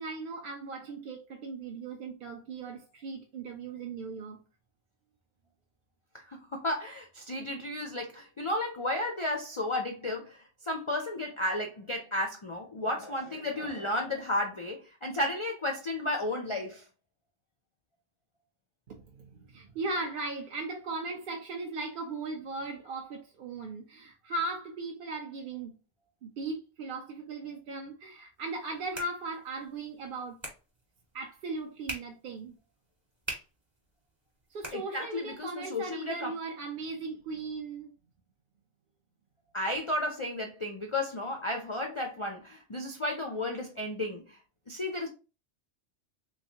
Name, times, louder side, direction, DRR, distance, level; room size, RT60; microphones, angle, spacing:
voice 1, 0.0-4.4 18.9-25.8 26.2-30.4 31.1-32.5 34.5-37.9, right 3 dB, 60° right, 0.7 m, -38 dB
voice 2, 6.1-16.8 34.7-36.3 39.5-44.4 44.7-45.1, left 1 dB, 50° left, 0.4 m, -33 dB
sound 1, 28.4-35.4, right 1 dB, 25° right, 0.9 m, -46 dB
3.4 x 3.1 x 2.7 m
omnidirectional pair, 1.2 m